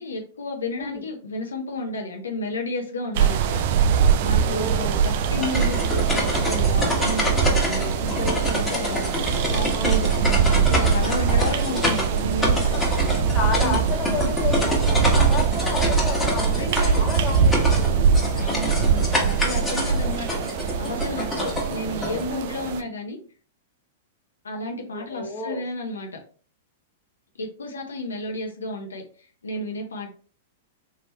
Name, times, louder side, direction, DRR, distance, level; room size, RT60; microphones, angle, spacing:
voice 1, 0.0-3.6 3.9-13.0 13.6-13.8 16.3-17.1 18.3-23.2 24.4-26.1 27.3-29.0 29.4-30.1, left 2 dB, 90° left, 2 dB, 0.9 m, -32 dB
sound 1, 3.2-22.8, right 7 dB, 55° right, 0.4 m, -22 dB
voice 2, 4.4-4.9 6.8-7.0 9.7-10.0 12.7-18.2 22.3-22.5 24.9-25.6, left 5 dB, 30° left, 1 dB, 1.3 m, -32 dB
sound 2, 5.2-22.2, left 1 dB, 15° left, 1.5 m, -27 dB
3.7 x 2.9 x 3.3 m, 0.41 s
hypercardioid pair, 115°, 0 cm